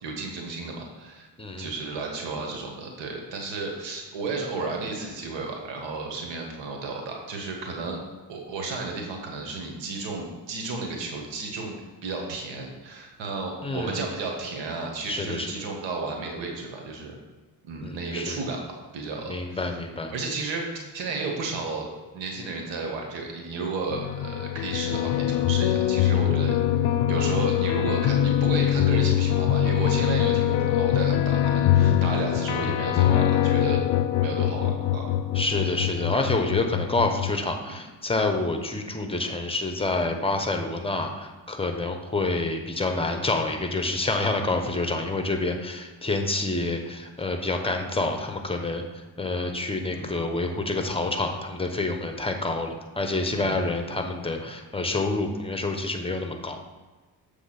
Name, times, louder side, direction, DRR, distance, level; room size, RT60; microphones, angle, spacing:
voice 1, 0.0-1.3 1.6-8.0 8.3-11.7 12.0-17.1 17.6-18.6 18.9-19.7 20.1-21.9 22.1-33.8 34.2-35.1 35.8-35.9 37.7-37.8 49.9-50.2 53.3-53.7, right 3 dB, 90° right, 1 dB, 1.4 m, -33 dB
voice 2, 1.4-1.7 13.6-14.0 15.1-15.5 17.8-18.4 19.3-20.1 35.3-56.6, left 2 dB, 15° left, 4 dB, 1.1 m, -28 dB
sound 1, 23.9-37.3, left 11 dB, 85° left, 0.5 m, -23 dB
7.1 x 3.5 x 5.9 m, 1.3 s
supercardioid pair, 60°, 43 cm